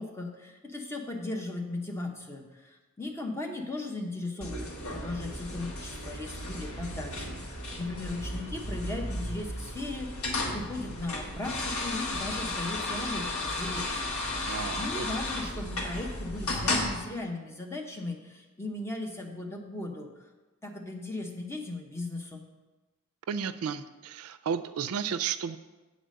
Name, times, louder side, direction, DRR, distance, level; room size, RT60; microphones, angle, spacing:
voice 1, 0.0-14.2 14.8-20.1 20.6-22.4, left 2 dB, 10° left, 1 dB, 0.8 m, -37 dB
sound 1, 4.4-16.9, left 2 dB, 80° left, 1.3 m, -34 dB
voice 2, 14.4-15.0 23.3-25.6, right 7 dB, 85° right, 12 dB, 0.4 m, -33 dB
8.0 x 4.1 x 6.4 m, 1.2 s
head